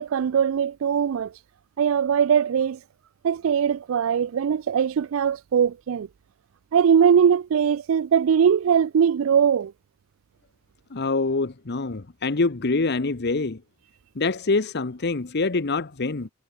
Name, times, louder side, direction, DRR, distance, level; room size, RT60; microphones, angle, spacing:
voice 1, 0.0-1.3 1.8-2.8 3.2-6.1 6.7-9.7, right 7 dB, 80° right, 0.4 m, -21 dB
voice 2, 10.9-13.6 14.1-16.3, left 3 dB, 55° left, 1.0 m, -25 dB
head